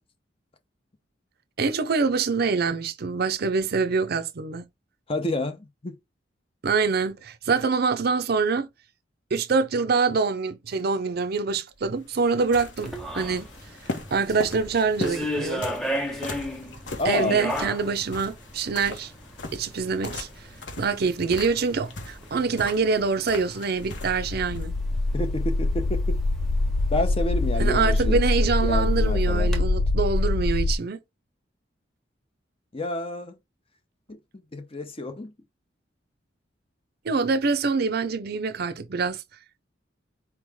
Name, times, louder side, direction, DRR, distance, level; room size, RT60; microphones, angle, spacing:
voice 1, 1.6-4.6 6.6-8.7 9.3-13.5 14.1-15.7 17.0-19.1 19.5-20.3 20.8-24.7 27.6-31.0 37.0-39.2, right 4 dB, 55° right, 0.5 m, -25 dB
voice 2, 5.1-6.0 17.0-17.4 25.1-26.2 26.9-28.2 28.6-29.5 32.7-33.4 34.1-34.2 34.5-35.3, left 1 dB, 30° left, 0.8 m, -29 dB
sound 1, 11.7-24.7, left 2 dB, 75° left, 1.3 m, -39 dB
sound 2, 12.8-29.6, equal, ahead, 1.0 m, -37 dB
sound 3, 23.8-30.7, left 2 dB, 55° left, 0.4 m, -24 dB
4.6 x 3.2 x 3.5 m
head